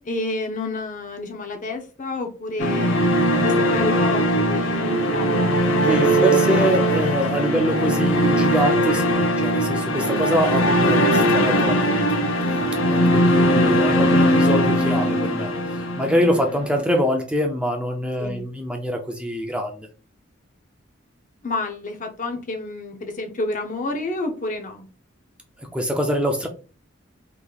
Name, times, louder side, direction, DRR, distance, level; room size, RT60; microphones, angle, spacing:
voice 1, 0.0-3.0 3.4-5.6 18.2-18.4 21.4-24.9, left 2 dB, 40° left, 0.6 m, -29 dB
sound 1, 2.6-16.7, equal, 75° left, 0.9 m, -20 dB
voice 2, 5.9-12.1 12.8-19.9 25.6-26.5, equal, 5° right, 0.5 m, -24 dB
3.7 x 3.1 x 2.3 m
head